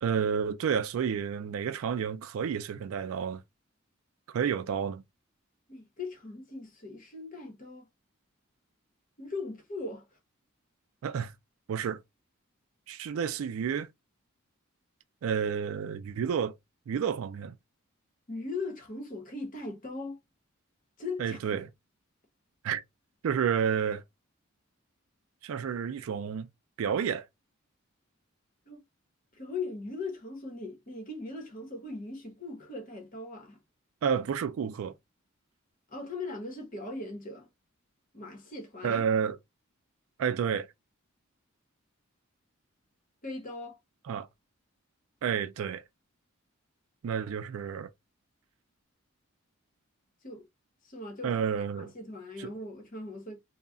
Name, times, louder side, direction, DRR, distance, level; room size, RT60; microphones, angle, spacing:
voice 1, 0.0-3.4 4.3-5.0 11.0-11.3 11.7-12.0 12.9-13.9 15.2-16.5 16.9-17.6 21.2-21.7 22.6-22.8 23.2-24.0 25.4-26.5 26.8-27.3 34.0-34.9 38.8-39.4 40.2-40.7 44.0-44.3 45.2-45.8 47.0-47.9 51.2-51.9 52.4-52.5, right 7 dB, 75° right, 0.3 m, -30 dB
voice 2, 5.7-7.8 9.2-10.1 18.3-20.2 21.0-21.6 28.7-28.8 29.3-33.6 35.9-37.5 38.1-39.0 43.2-43.8 50.2-50.5 50.8-51.4 51.8-53.4, left 3 dB, 40° left, 0.9 m, -39 dB
2.3 x 2.1 x 3.6 m
head